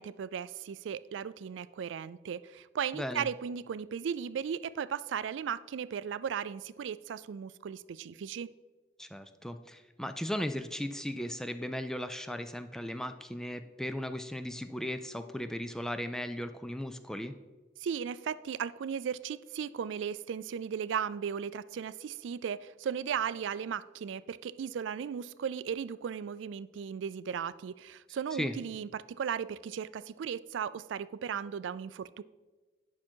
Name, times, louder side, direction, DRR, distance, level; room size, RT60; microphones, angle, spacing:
voice 1, 0.0-8.5 17.8-32.2, right 7 dB, 80° right, 17 dB, 0.3 m, -36 dB
voice 2, 2.9-3.3 9.0-17.3 28.3-28.5, equal, 5° left, 9 dB, 0.4 m, -37 dB
10.0 x 5.8 x 4.5 m, 1.2 s
head